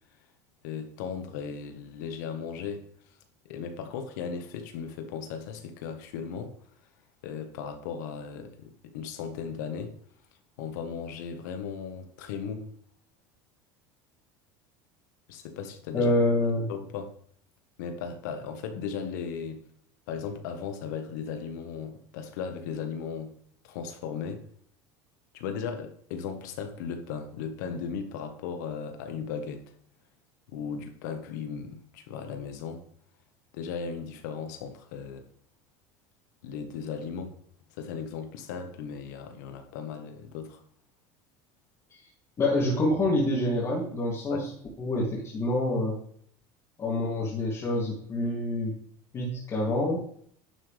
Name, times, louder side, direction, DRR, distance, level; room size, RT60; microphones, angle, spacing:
voice 1, 0.6-2.8 3.4-6.5 7.2-9.9 10.6-12.7 15.3-16.1 16.7-17.1 17.8-19.6 20.1-23.3 23.6-24.4 25.3-29.6 30.5-32.8 33.5-35.2 36.4-37.3 37.8-40.6 44.3-44.4, left 6 dB, 85° left, 1.5 m, -36 dB
voice 2, 15.9-16.7 41.9-42.0 42.4-44.5 44.8-46.0 46.8-48.8 49.1-50.0, left 1 dB, 30° left, 2.9 m, -27 dB
11.0 x 7.8 x 3.5 m
supercardioid pair, 125°, 9 cm